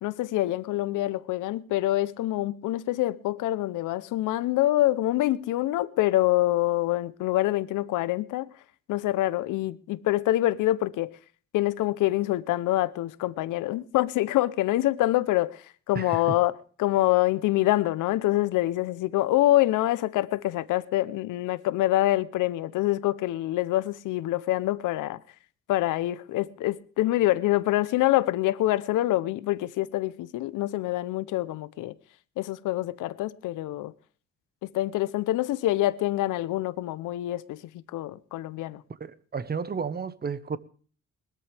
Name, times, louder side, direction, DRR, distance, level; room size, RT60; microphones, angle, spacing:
voice 1, 0.0-8.5 8.9-11.1 11.5-25.2 25.7-32.0 32.4-33.9 34.6-37.6 37.9-38.8, left 15 dB, 90° left, 0.9 m, -26 dB
voice 2, 15.9-16.4 39.0-40.6, right 5 dB, 30° right, 1.2 m, -32 dB
20.5 x 13.0 x 3.5 m
cardioid pair, 90°, 30 cm